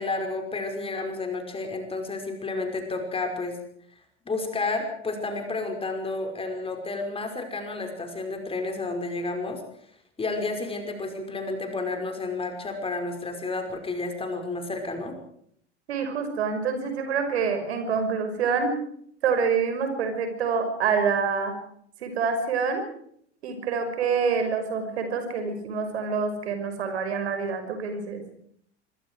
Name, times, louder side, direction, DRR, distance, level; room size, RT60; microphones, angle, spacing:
voice 1, 0.0-3.6 4.3-9.6 10.2-15.1, left 3 dB, 15° left, 4 dB, 5.5 m, -31 dB
voice 2, 15.9-18.8 19.2-21.5 22.0-22.8 23.4-28.2, right 5 dB, 65° right, 7 dB, 5.8 m, -26 dB
25.5 x 24.0 x 4.8 m, 0.68 s
figure-of-eight pair, 85°, 35 cm